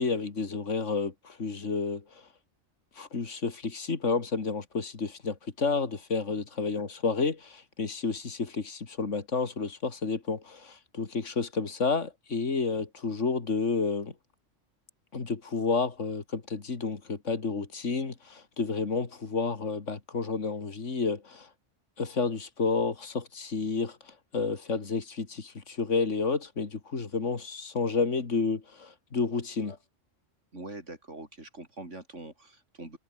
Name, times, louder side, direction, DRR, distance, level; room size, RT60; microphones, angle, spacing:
voice 1, 0.0-2.3 3.0-14.1 15.1-21.5 22.0-29.8, left 4 dB, 70° left, 2.7 m, -30 dB
voice 2, 30.5-33.0, right 2 dB, 70° right, 5.9 m, -43 dB
omnidirectional pair, 1.3 m